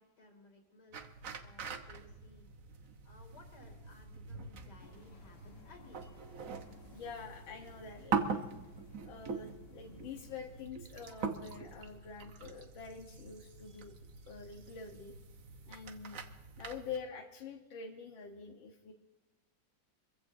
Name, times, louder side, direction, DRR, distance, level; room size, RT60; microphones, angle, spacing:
voice 1, 0.0-2.5 3.0-6.1, left 2 dB, 60° left, 3 dB, 3.2 m, -59 dB
sound 1, 0.9-17.0, right 5 dB, 50° right, 1.2 m, -43 dB
sound 2, 4.8-10.7, left 2 dB, 35° left, 1.3 m, -60 dB
voice 2, 6.9-8.4 9.0-13.9 14.3-15.1 15.7-16.2 16.6-18.9, left 5 dB, 85° left, 1 dB, 2.0 m, -46 dB
24.5 x 15.5 x 2.7 m, 1.2 s
omnidirectional pair, 2.1 m